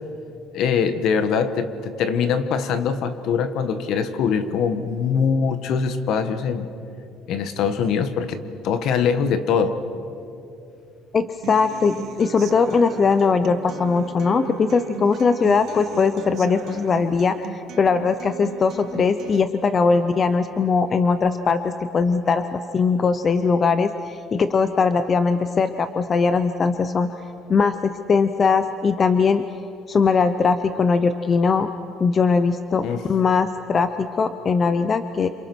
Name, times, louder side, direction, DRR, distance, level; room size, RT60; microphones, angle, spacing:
voice 1, 0.5-6.7 7.3-9.8 32.8-33.0, left 6 dB, 50° left, 10 dB, 1.5 m, -23 dB
voice 2, 11.1-27.1 27.5-29.5 29.9-31.7 32.0-35.3, left 5 dB, 25° left, 10 dB, 0.7 m, -20 dB
Human voice / Acoustic guitar, 11.4-19.4, right 11 dB, 45° right, 0.7 m, -37 dB
28.0 x 27.0 x 6.2 m, 2.7 s
cardioid pair, 170°, 0 cm